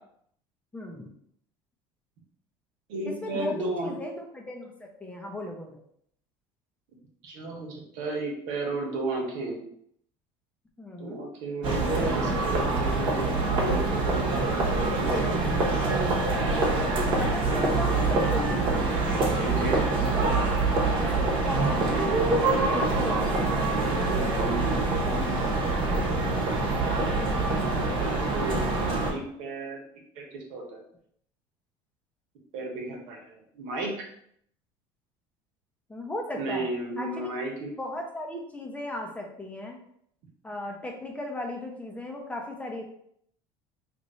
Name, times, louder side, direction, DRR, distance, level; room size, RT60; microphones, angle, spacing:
voice 1, 0.7-1.1 3.0-5.8 10.8-11.2 17.2-18.8 21.0-23.7 35.9-36.7 37.0-37.3 37.8-39.8 40.4-42.8, left 1 dB, 10° left, 1 dB, 0.7 m, -37 dB
voice 2, 2.9-3.9 7.2-9.6 11.0-15.4 19.4-19.8 27.7-29.8 30.1-30.8 32.5-33.9 36.4-37.7, right 2 dB, 75° right, 0 dB, 1.1 m, -34 dB
sound 1, 11.6-29.1, right 3 dB, 45° right, 1.1 m, -25 dB
3.0 x 2.5 x 4.1 m, 0.68 s
supercardioid pair, 115°, 12 cm